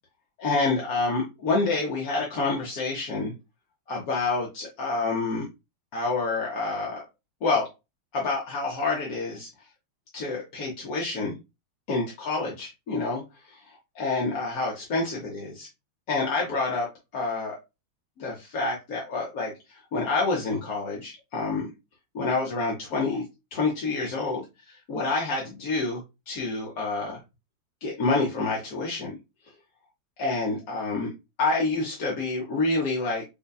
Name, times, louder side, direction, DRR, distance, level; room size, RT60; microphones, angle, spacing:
voice 1, 0.4-3.3 3.9-5.4 5.9-7.1 7.4-7.7 8.1-9.5 10.1-11.3 11.9-13.2 13.5-15.7 16.1-16.9 17.1-17.6 18.2-21.7 22.1-23.2 23.5-27.2 27.8-29.2 30.2-31.1 31.4-33.2, left 3 dB, 55° left, -2 dB, 1.1 m, -28 dB
5.3 x 2.2 x 2.2 m, 0.24 s
omnidirectional pair, 2.2 m